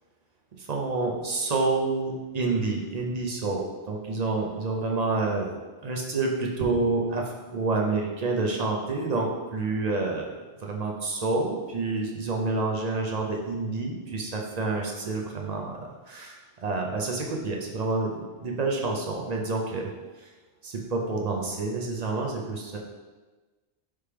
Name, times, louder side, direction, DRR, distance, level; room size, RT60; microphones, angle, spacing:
voice 1, 0.6-5.6 5.8-10.4 10.6-19.9 20.2-20.3 20.6-22.8, right 3 dB, 45° right, 0 dB, 0.6 m, -28 dB
4.3 x 3.4 x 3.3 m, 1.2 s
omnidirectional pair, 1.1 m